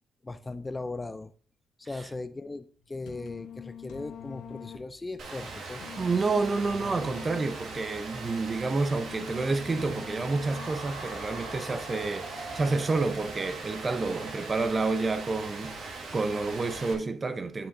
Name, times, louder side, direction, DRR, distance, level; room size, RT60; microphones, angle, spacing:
voice 1, 0.2-1.3 1.8-5.8, left 3 dB, 20° left, 0.4 m, -38 dB
sound 1, 2.8-11.1, left 8 dB, 80° left, 1.1 m, -45 dB
Rain, 5.2-16.9, right 3 dB, 65° right, 2.0 m, -40 dB
voice 2, 6.0-17.7, right 3 dB, 30° right, 0.8 m, -29 dB
sound 2, 10.5-15.4, right 2 dB, 90° right, 3.2 m, -44 dB
8.9 x 7.9 x 2.6 m
cardioid pair, 90°, 0 cm